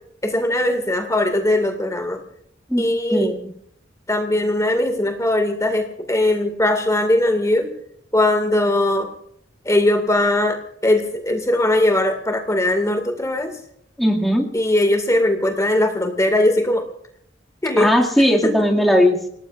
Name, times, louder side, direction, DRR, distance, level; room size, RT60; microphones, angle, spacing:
voice 1, 0.2-2.2 2.8-3.3 4.1-7.7 8.1-9.1 9.7-13.5 14.5-16.9 17.6-17.9 18.4-18.5, left 1 dB, 15° left, 5 dB, 2.1 m, -20 dB
voice 2, 2.7-3.5 14.0-14.5 17.8-19.3, equal, ahead, -2 dB, 2.3 m, -18 dB
30.0 x 18.5 x 2.5 m, 0.71 s
head